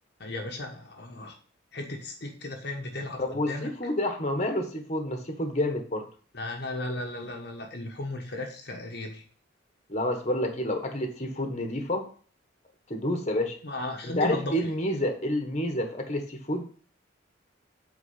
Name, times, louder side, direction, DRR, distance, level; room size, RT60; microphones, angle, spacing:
voice 1, 0.2-1.4 1.7-3.7 6.3-9.2 13.6-14.7, left 2 dB, 50° left, 1 dB, 1.2 m, -35 dB
voice 2, 3.2-6.1 9.9-12.1 12.9-13.5 14.0-16.7, left 1 dB, 35° left, 5 dB, 1.3 m, -29 dB
8.4 x 4.6 x 5.7 m, 0.42 s
head